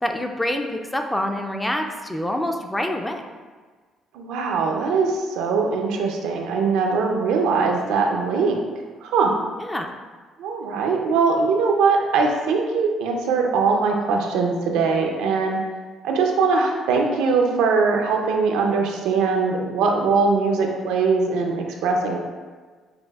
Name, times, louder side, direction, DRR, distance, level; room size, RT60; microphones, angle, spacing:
voice 1, 0.0-3.2 9.6-9.9, left 1 dB, 10° left, 4 dB, 0.4 m, -26 dB
voice 2, 4.1-8.6 9.0-9.3 10.4-15.6 16.0-22.2, right 4 dB, 85° right, 2 dB, 0.5 m, -21 dB
6.6 x 2.4 x 2.3 m, 1.4 s
supercardioid pair, 80°, 0 cm